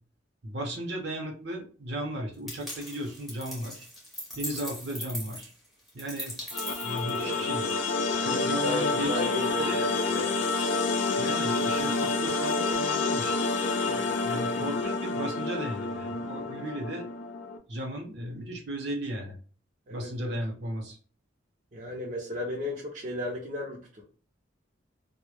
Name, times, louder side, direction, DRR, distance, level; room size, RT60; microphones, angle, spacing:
voice 1, 0.4-3.9 4.4-5.5 5.9-6.4 6.8-7.7 8.2-9.2 9.6-9.9 11.2-13.7 14.2-17.1 17.7-19.4 19.9-21.0, right 1 dB, 65° right, 1 dB, 0.8 m, -35 dB
sound 1, 2.5-7.7, equal, ahead, 0.6 m, -40 dB
sound 2, 6.5-17.6, left 3 dB, 80° left, 0.4 m, -28 dB
voice 2, 6.9-7.4 8.0-10.4 13.8-14.1 16.4-16.5 19.9-20.4 21.7-24.0, left 1 dB, 40° right, -4 dB, 0.5 m, -35 dB
2.1 x 2.0 x 3.0 m, 0.40 s
head